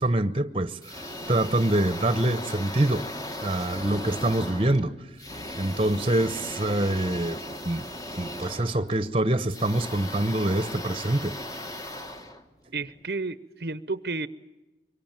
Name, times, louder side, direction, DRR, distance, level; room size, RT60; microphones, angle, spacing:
voice 1, 0.0-3.1 3.4-4.9 5.6-7.4 7.7-7.8 8.2-11.3, right 1 dB, 30° right, 1.0 m, -25 dB
sound 1, 0.8-13.0, left 1 dB, 20° left, 1.6 m, -37 dB
voice 2, 12.7-14.3, right 3 dB, 60° right, 0.9 m, -31 dB
25.5 x 23.5 x 9.1 m
head